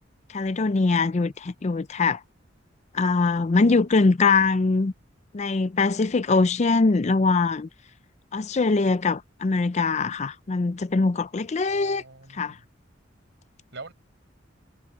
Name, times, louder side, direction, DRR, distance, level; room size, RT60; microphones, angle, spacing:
voice 1, 0.3-2.2 2.9-4.9 5.3-7.7 8.3-12.0 12.3-12.6, left 3 dB, 35° left, 0.5 m, -22 dB
voice 2, 11.7-12.6 13.7-13.9, right 3 dB, 65° right, 5.5 m, -43 dB
head